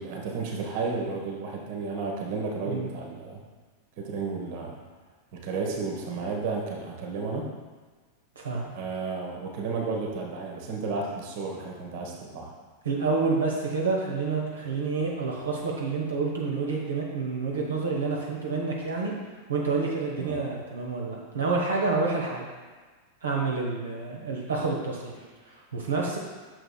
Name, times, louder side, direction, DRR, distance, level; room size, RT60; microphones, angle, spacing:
voice 1, 0.0-3.4 4.0-4.8 5.3-7.5 8.7-12.5 20.2-20.4, right 4 dB, 50° right, 0 dB, 1.1 m, -32 dB
voice 2, 12.8-19.1 19.5-22.4 23.2-26.2, right 4 dB, 70° right, -2 dB, 1.1 m, -28 dB
9.1 x 6.6 x 2.3 m, 1.4 s
figure-of-eight pair, 90°, 0 cm